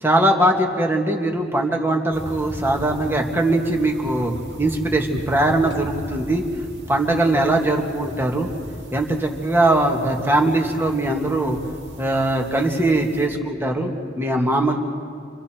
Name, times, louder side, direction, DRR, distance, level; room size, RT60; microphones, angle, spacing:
voice 1, 0.0-4.3 4.6-6.4 6.9-8.5 8.9-11.6 12.0-14.8, right 1 dB, 10° right, 1 dB, 1.9 m, -21 dB
sound 1, 2.1-13.3, equal, 65° right, 3.0 m, -38 dB
29.5 x 26.5 x 4.5 m, 2.3 s
head